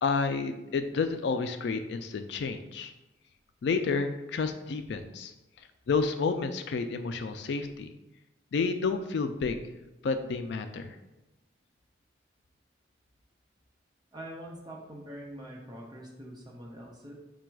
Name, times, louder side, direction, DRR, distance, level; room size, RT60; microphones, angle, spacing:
voice 1, 0.0-2.9 3.6-5.3 5.9-7.9 8.5-9.6 10.0-11.0, left 4 dB, 65° left, 8 dB, 0.3 m, -30 dB
voice 2, 14.1-17.1, right 1 dB, 20° right, -2 dB, 0.8 m, -44 dB
5.0 x 2.2 x 4.6 m, 0.98 s
head